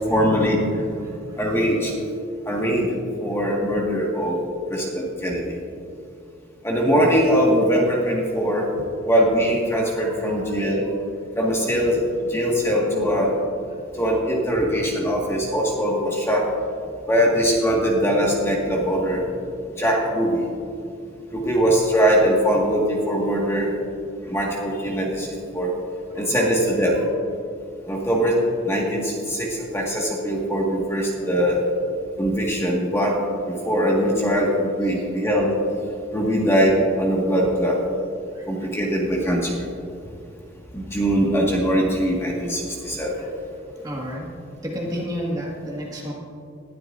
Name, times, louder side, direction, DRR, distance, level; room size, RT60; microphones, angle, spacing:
voice 1, 0.1-1.9 2.5-4.4 4.7-5.6 6.6-8.7 9.0-10.9 11.3-12.0 12.3-13.5 13.9-16.5 17.1-19.3 19.8-20.5 21.3-23.8 24.2-25.7 26.1-27.0 27.9-31.7 32.2-33.2 33.5-35.5 36.1-37.8 38.5-39.7 40.7-43.3, equal, 15° left, -3 dB, 1.7 m, -21 dB
voice 2, 1.0-1.4 10.0-10.4 10.8-10.9 13.0-13.4 13.7-13.8 26.1-26.4 26.9-27.1 38.3-38.7 43.2-43.3 43.8-44.3 44.6-46.1, equal, 20° right, -3 dB, 1.8 m, -33 dB
20.0 x 12.0 x 2.6 m, 2.5 s
head